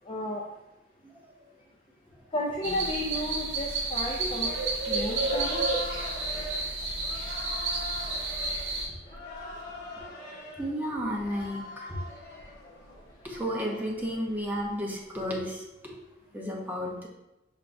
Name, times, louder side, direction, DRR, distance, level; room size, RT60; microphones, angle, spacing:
voice 1, 0.0-0.4 2.3-4.5 4.9-5.6, left 1 dB, 25° left, -2 dB, 0.5 m, -32 dB
sound 1, 2.6-8.9, right 3 dB, 75° right, 1.1 m, -31 dB
sound 2, 4.4-15.2, left 1 dB, 55° left, 1.2 m, -43 dB
voice 2, 10.6-11.9 13.2-16.0 16.3-17.1, equal, 10° right, -2 dB, 0.7 m, -33 dB
5.7 x 3.5 x 2.6 m, 0.94 s
head